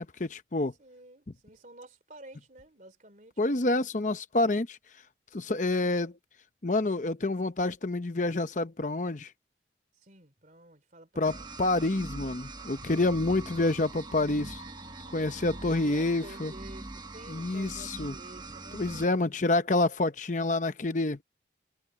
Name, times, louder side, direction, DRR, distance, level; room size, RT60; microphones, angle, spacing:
voice 1, 0.0-0.7 3.4-4.8 5.3-6.1 6.6-9.3 11.2-14.6 15.1-16.5 17.3-18.2 18.7-21.2, left 2 dB, 40° left, 0.8 m, -28 dB
voice 2, 0.8-3.6 10.0-11.5 13.5-13.8 15.7-19.1, right 1 dB, 45° right, 3.2 m, -51 dB
sound 1, 11.2-19.1, right 2 dB, 25° right, 1.1 m, -43 dB
head